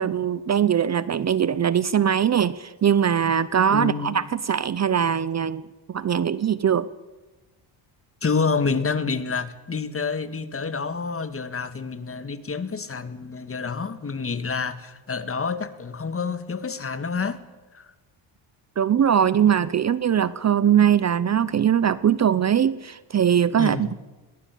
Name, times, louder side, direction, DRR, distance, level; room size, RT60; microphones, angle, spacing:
voice 1, 0.0-5.6 5.9-6.9 18.8-23.9, right 8 dB, 35° right, 0.7 m, -21 dB
voice 2, 3.7-4.2 8.2-17.4 17.7-17.9 23.6-23.9, left 5 dB, 30° left, 1.8 m, -28 dB
21.5 x 19.0 x 8.4 m
cardioid pair, 95°, 47 cm